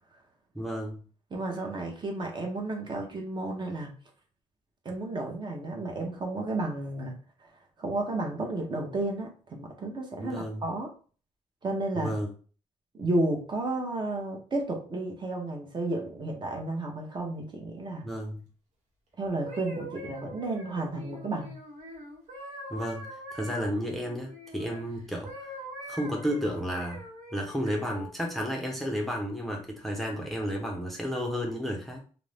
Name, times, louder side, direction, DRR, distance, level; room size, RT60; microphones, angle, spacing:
voice 1, 0.5-1.0 10.2-10.6 12.0-12.3 18.0-18.4 22.7-25.5 25.9-32.0, equal, ahead, 0 dB, 0.5 m, -32 dB
voice 2, 1.3-4.0 4.8-10.9 11.6-12.1 13.0-18.1 19.2-21.5, right 2 dB, 40° right, 2 dB, 0.7 m, -32 dB
sound 1, 19.3-24.8 25.2-28.1 28.8-29.0, equal, 75° right, 0.9 m, -43 dB
2.5 x 2.0 x 3.2 m, 0.40 s
cardioid pair, 100°, 13 cm